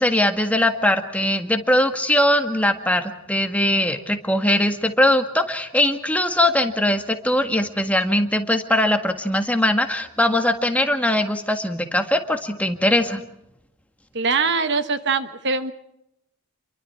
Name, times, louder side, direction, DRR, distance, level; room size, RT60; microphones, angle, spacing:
voice 1, 0.0-3.0 3.3-13.2, left 1 dB, 5° left, 5 dB, 1.7 m, -21 dB
voice 2, 14.1-15.7, right 4 dB, 55° right, 10 dB, 1.3 m, -22 dB
29.0 x 23.5 x 4.7 m, 0.82 s
head